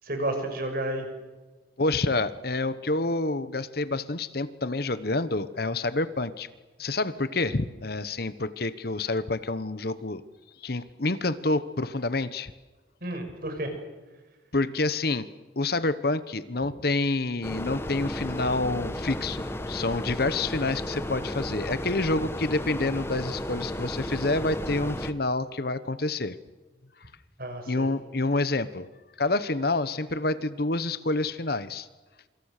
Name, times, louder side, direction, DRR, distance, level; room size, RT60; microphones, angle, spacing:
voice 1, 0.0-1.1 13.0-13.7 27.4-27.9, right 1 dB, 50° right, 5 dB, 6.1 m, -31 dB
voice 2, 1.8-6.5 6.8-10.2 10.6-12.5 14.5-15.3 15.6-26.4 27.7-28.9 29.2-31.9, left 2 dB, 55° left, 14 dB, 1.1 m, -28 dB
sound 1, 17.4-25.1, left 1 dB, 15° left, 1.3 m, -34 dB
27.5 x 26.0 x 6.7 m, 1.2 s
head